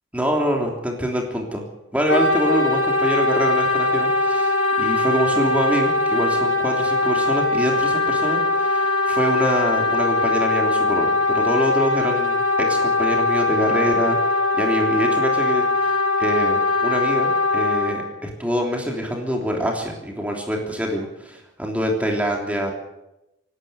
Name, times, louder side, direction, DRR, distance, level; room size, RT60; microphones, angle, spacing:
voice 1, 0.1-1.6 1.9-22.7, equal, 5° right, 0 dB, 3.3 m, -25 dB
Wind instrument woodwind instrument, 2.1-18.0, left 3 dB, 80° left, 3.3 m, -21 dB
27.0 x 12.5 x 8.1 m, 0.91 s
head